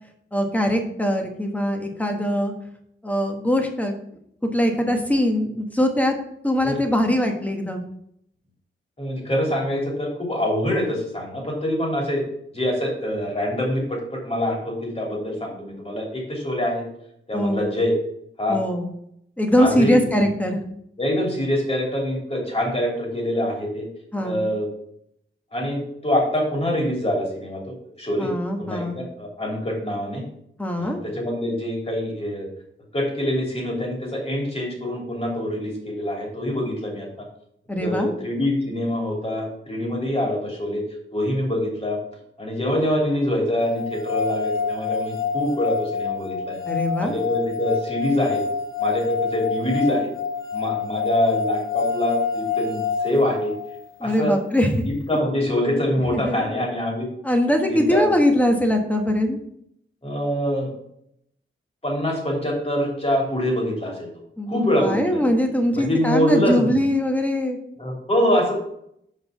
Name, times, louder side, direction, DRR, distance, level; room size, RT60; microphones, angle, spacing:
voice 1, 0.3-2.5 3.0-3.9 4.5-6.1 6.4-7.8 17.3-17.6 18.5-18.9 19.4-20.6 24.1-24.4 28.2-29.0 30.6-31.0 37.7-38.1 46.7-47.2 54.0-54.7 56.1-56.4 57.2-59.4 64.4-67.6, left 1 dB, 5° left, 3 dB, 1.3 m, -22 dB
voice 2, 9.0-12.2 12.5-16.8 17.3-17.9 18.4-18.6 19.6-20.3 21.0-23.8 24.2-24.7 25.5-28.3 28.6-30.2 30.8-32.5 32.9-37.1 37.8-40.8 41.1-42.0 42.4-46.6 47.0-48.4 48.8-50.1 50.5-53.5 54.0-54.3 54.8-57.1 57.7-58.1 60.0-60.7 61.8-64.1 64.5-65.2 65.7-66.7 67.8-68.5, left 1 dB, 30° left, -2 dB, 3.0 m, -25 dB
sound 1, 43.7-53.9, left 5 dB, 75° left, 1.0 m, -27 dB
6.2 x 5.1 x 5.8 m, 0.72 s
wide cardioid pair, 100°, 21 cm